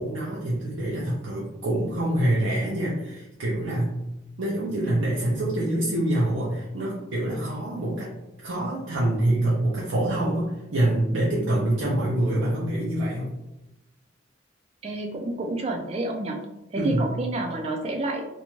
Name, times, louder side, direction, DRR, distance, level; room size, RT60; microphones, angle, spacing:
voice 1, 0.0-4.0 4.4-8.1 8.4-13.3 16.8-17.1, right 1 dB, 80° right, -6 dB, 0.6 m, -25 dB
voice 2, 14.8-16.4 16.7-18.3, right 2 dB, 30° right, 2 dB, 0.3 m, -29 dB
2.5 x 2.2 x 3.0 m, 0.93 s
head